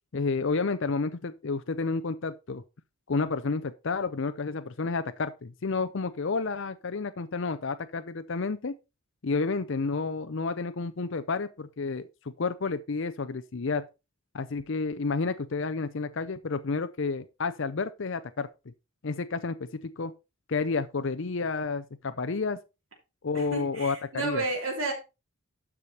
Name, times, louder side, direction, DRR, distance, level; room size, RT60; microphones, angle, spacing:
voice 1, 0.1-2.6 3.1-8.7 9.2-13.9 14.3-18.5 19.0-20.1 20.5-22.6 23.2-24.4, left 4 dB, 60° left, 0.6 m, -30 dB
voice 2, 23.3-24.9, right 3 dB, 65° right, 3.0 m, -32 dB
12.0 x 5.0 x 4.2 m
head